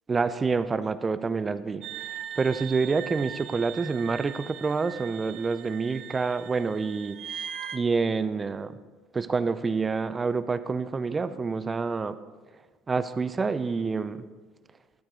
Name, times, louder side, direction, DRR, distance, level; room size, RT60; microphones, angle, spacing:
voice 1, 0.1-1.9 2.4-7.2 7.7-8.8 9.1-12.1 12.9-14.3, right 4 dB, 25° right, 14 dB, 0.5 m, -27 dB
sound 1, 1.8-7.8, right 9 dB, 60° right, 0.7 m, -40 dB
12.0 x 9.0 x 3.8 m, 1.3 s
supercardioid pair, 95°, 0 cm